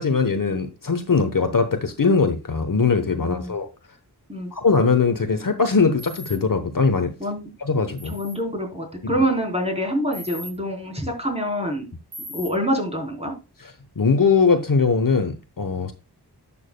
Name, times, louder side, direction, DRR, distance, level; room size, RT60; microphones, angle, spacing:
voice 1, 0.0-3.7 4.5-7.1 7.6-8.1 9.0-9.1 14.0-15.9, left 4 dB, 50° left, 1.1 m, -21 dB
voice 2, 3.2-3.5 4.3-4.5 7.2-7.5 8.0-11.9 12.3-13.3, equal, 15° right, 3.9 m, -26 dB
sound 1, 6.0-6.4 8.0-8.4 10.1-10.5 12.1-12.5, equal, 70° right, 3.0 m, -38 dB
11.0 x 7.2 x 2.2 m
wide cardioid pair, 60°, 41 cm